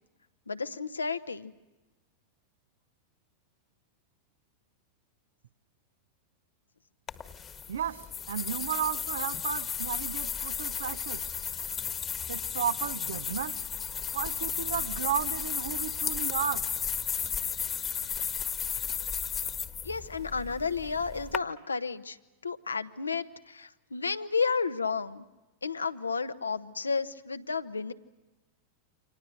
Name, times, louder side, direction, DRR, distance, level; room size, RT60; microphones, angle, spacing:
voice 1, 0.5-1.5 19.8-22.2 22.4-25.2 25.6-27.9, left 5 dB, 75° left, 11 dB, 1.1 m, -32 dB
sound 1, 7.1-21.4, left 7 dB, 25° left, 1.4 m, -34 dB
voice 2, 7.7-11.3 12.3-13.6 14.1-16.7, right 9 dB, 65° right, 13 dB, 1.0 m, -33 dB
29.0 x 26.0 x 6.5 m, 1.1 s
figure-of-eight pair, 90°, 0 cm